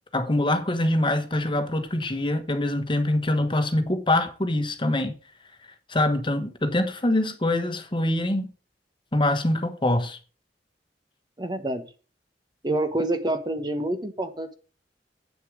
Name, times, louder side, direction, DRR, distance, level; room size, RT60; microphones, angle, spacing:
voice 1, 0.1-5.1 5.9-8.5 9.1-10.2, left 1 dB, 30° left, 1.3 m, -24 dB
voice 2, 11.4-11.9 12.6-14.5, right 1 dB, 25° right, 1.0 m, -27 dB
8.7 x 6.7 x 4.9 m
head